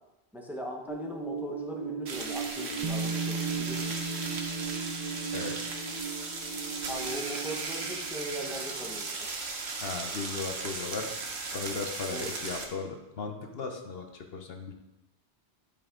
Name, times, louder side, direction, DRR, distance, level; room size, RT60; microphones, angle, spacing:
voice 1, 0.3-3.9 6.9-9.3 12.1-12.3, right 1 dB, ahead, 0 dB, 1.0 m, -39 dB
sound 1, 0.9-8.1, right 5 dB, 85° left, 1.5 m, -38 dB
sound 2, 2.1-12.7, right 3 dB, 75° right, 1.3 m, -37 dB
Bass guitar, 2.8-6.8 7.9-8.0, right 3 dB, 50° right, 0.3 m, -37 dB
voice 2, 9.8-11.1 11.4-14.7, left 4 dB, 65° left, 4 dB, 1.1 m, -37 dB
11.0 x 5.7 x 3.7 m, 0.95 s
omnidirectional pair, 1.1 m